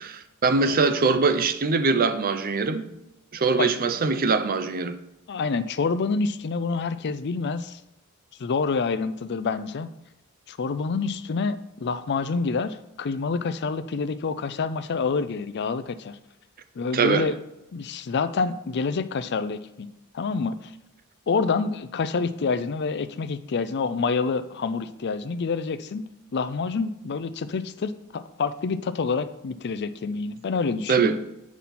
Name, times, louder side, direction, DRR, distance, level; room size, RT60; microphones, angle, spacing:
voice 1, 0.0-2.8 3.3-5.0 16.9-17.3 30.9-31.2, right 4 dB, 40° right, 0.6 m, -22 dB
voice 2, 5.3-7.8 8.4-9.9 10.5-16.2 16.8-17.3 17.7-19.9 20.1-20.5 21.3-26.0 26.3-31.2, left 4 dB, 50° left, 0.4 m, -27 dB
8.4 x 5.9 x 4.2 m
head